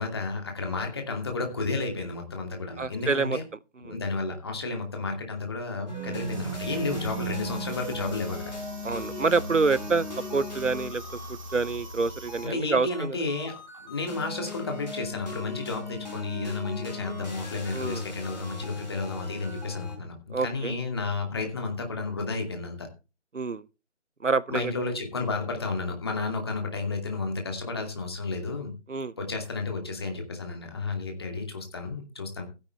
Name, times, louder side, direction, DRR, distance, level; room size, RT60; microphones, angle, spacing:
voice 1, 0.0-3.4 3.8-8.5 12.4-13.5 13.8-22.9 24.5-28.7 29.2-32.4, left 3 dB, 20° left, 2.5 m, -32 dB
voice 2, 2.8-3.4 3.9-4.0 6.0-6.2 8.8-10.1 10.3-11.0 11.3-13.2 17.7-18.0 20.3-20.7 23.3-23.6 24.2-24.7 28.9-29.1, right 4 dB, 85° right, 0.9 m, -27 dB
sound 1, 5.9-20.0, left 1 dB, 35° left, 5.1 m, -38 dB
sound 2, 6.2-12.5, right 1 dB, 25° right, 2.8 m, -42 dB
15.0 x 9.8 x 3.4 m
figure-of-eight pair, 165°, 36 cm